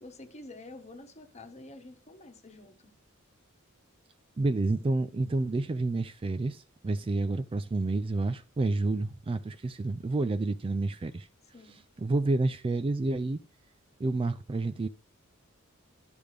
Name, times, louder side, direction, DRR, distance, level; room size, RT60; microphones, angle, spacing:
voice 1, 0.0-2.9 11.5-11.8, left 2 dB, 30° left, 1.2 m, -48 dB
voice 2, 4.4-11.3 12.0-13.4 14.0-14.9, right 2 dB, 25° right, 0.3 m, -29 dB
12.5 x 5.1 x 3.3 m
head